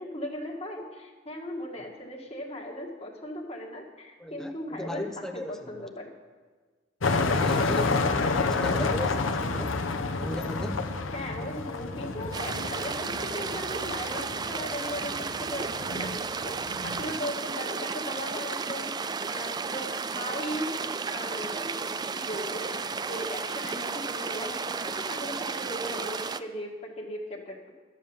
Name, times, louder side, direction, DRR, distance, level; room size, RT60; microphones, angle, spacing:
voice 1, 0.0-6.1 7.8-8.8 11.1-27.7, left 1 dB, 30° left, 0 dB, 1.8 m, -38 dB
voice 2, 4.2-5.9 7.3-8.0 8.5-9.8 10.2-10.9, left 1 dB, 5° left, 5 dB, 0.7 m, -37 dB
sound 1, 7.0-17.1, left 3 dB, 85° left, 0.9 m, -29 dB
sound 2, 12.3-26.4, right 5 dB, 20° right, 0.3 m, -33 dB
12.5 x 7.6 x 7.2 m, 1.4 s
head